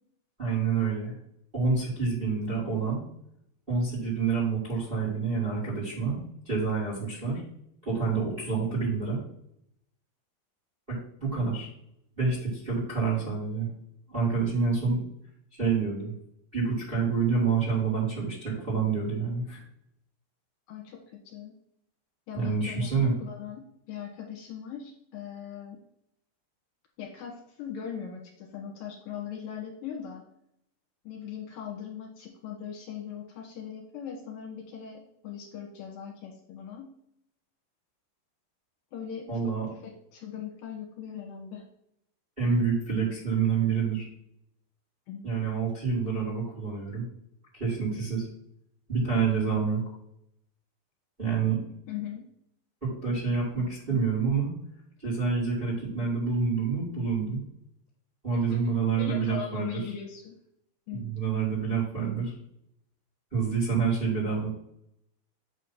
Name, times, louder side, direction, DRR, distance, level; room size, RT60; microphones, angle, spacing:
voice 1, 0.4-1.2 1.5-3.0 3.7-6.2 6.4-7.4 7.8-9.2 11.2-11.7 12.2-13.7 14.1-15.0 15.6-16.1 16.5-19.6 22.3-23.1 39.3-39.7 42.4-44.0 45.2-47.0 47.5-48.2 48.9-49.8 51.2-51.6 52.8-54.5 55.0-57.4 58.2-59.8 60.9-62.3 63.3-64.5, right 5 dB, 20° right, -7 dB, 1.7 m, -27 dB
voice 2, 8.5-8.8 20.7-21.5 22.3-25.8 27.0-30.2 31.0-36.9 38.9-41.6 45.1-45.2 51.9-52.3 58.3-60.4 60.9-61.1, left 8 dB, 70° left, -1 dB, 2.7 m, -40 dB
8.3 x 3.1 x 5.6 m, 0.74 s
omnidirectional pair, 4.6 m